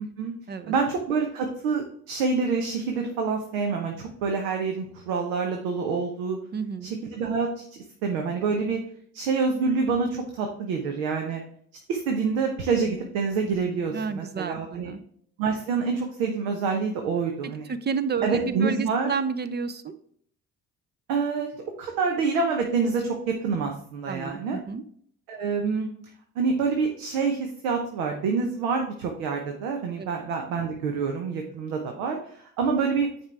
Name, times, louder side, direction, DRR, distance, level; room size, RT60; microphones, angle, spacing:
voice 1, 0.0-0.3 0.7-6.4 6.8-8.8 9.1-11.4 11.9-14.9 15.4-17.7 18.2-19.1 21.1-21.5 21.8-24.6 25.3-25.9 26.4-33.1, right 5 dB, 70° right, 3 dB, 1.0 m, -27 dB
voice 2, 6.5-7.0 13.9-15.0 17.7-19.9 24.1-24.8 30.0-30.1, right 5 dB, 25° right, 12 dB, 0.5 m, -30 dB
9.5 x 4.4 x 3.5 m, 0.63 s
figure-of-eight pair, 45°, 44 cm